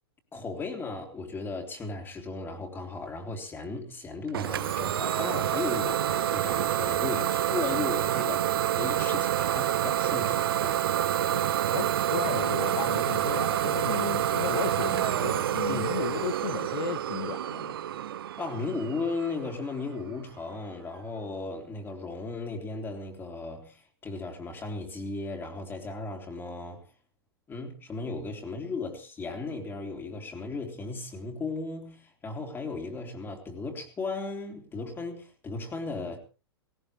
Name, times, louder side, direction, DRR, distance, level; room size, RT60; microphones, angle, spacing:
voice 1, 0.3-10.8 15.7-16.0 18.4-26.9 27.5-36.2, left 3 dB, 15° left, 3.2 m, -36 dB
Idling / Domestic sounds home sounds, 4.3-19.9, right 11 dB, 65° right, 0.8 m, -28 dB
voice 2, 11.7-17.8, left 10 dB, 60° left, 1.0 m, -35 dB
18.0 x 18.0 x 3.3 m
figure-of-eight pair, 110°, 13 cm